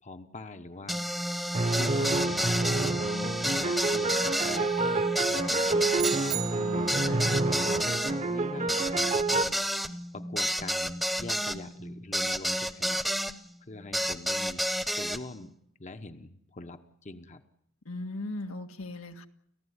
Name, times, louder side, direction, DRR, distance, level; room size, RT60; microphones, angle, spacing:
voice 1, 0.0-1.0 1.8-3.1 3.5-6.6 7.2-9.6 10.1-13.0 13.6-14.6 15.0-15.5 15.8-17.4, left 2 dB, 35° left, 8 dB, 1.1 m, -44 dB
sound 1, 0.9-13.3 13.9-15.2, equal, ahead, 1.0 m, -31 dB
sound 2, 1.5-9.5, right 3 dB, 30° right, 1.1 m, -29 dB
sound 3, 6.0-7.1, right 15 dB, 70° right, 0.9 m, -35 dB
voice 2, 7.0-7.4 17.8-19.3, left 2 dB, 80° left, 5 dB, 1.8 m, -38 dB
30.0 x 15.5 x 9.9 m, 0.77 s
head